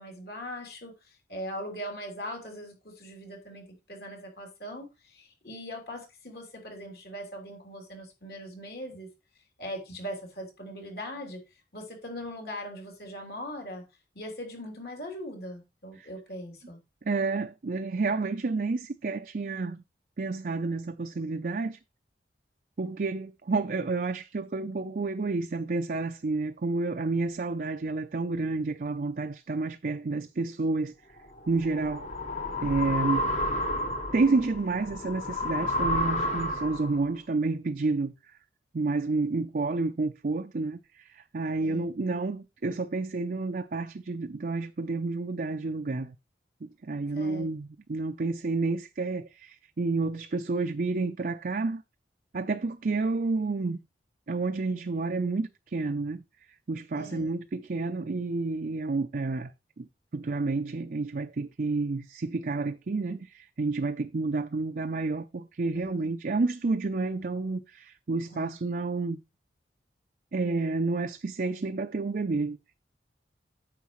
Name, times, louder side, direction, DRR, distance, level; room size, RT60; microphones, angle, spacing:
voice 1, 0.0-9.1 9.6-11.4 11.7-13.8 14.1-16.8 41.6-41.9 47.1-47.5 57.0-57.3 65.7-66.1 68.3-68.6, equal, 60° left, 3.1 m, -40 dB
voice 2, 17.0-19.8 20.2-21.8 22.8-30.9 31.5-32.1 32.6-33.4 34.1-38.1 38.7-46.2 46.6-51.8 52.3-53.8 54.3-56.2 56.7-59.5 59.8-59.9 60.1-69.2 70.3-72.7, right 3 dB, 50° right, 0.5 m, -30 dB
sound 1, 31.2-37.0, left 1 dB, 40° left, 1.1 m, -31 dB
9.4 x 7.1 x 3.1 m
head